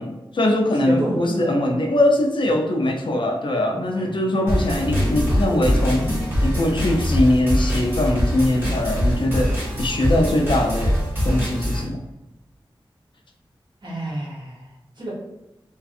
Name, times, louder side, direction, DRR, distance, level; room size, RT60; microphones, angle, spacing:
voice 1, 0.0-12.0, left 1 dB, 60° left, 2 dB, 0.4 m, -22 dB
voice 2, 0.7-1.2 1.7-1.8 3.7-4.4 13.8-14.6 15.0-15.1, right 1 dB, 55° right, -5 dB, 1.0 m, -30 dB
sound 1, 4.5-11.8, equal, 25° right, 1.3 m, -23 dB
sound 2, 4.7-7.2, left 1 dB, 80° left, 0.8 m, -27 dB
2.5 x 2.3 x 2.5 m, 0.94 s
wide cardioid pair, 70°, 9 cm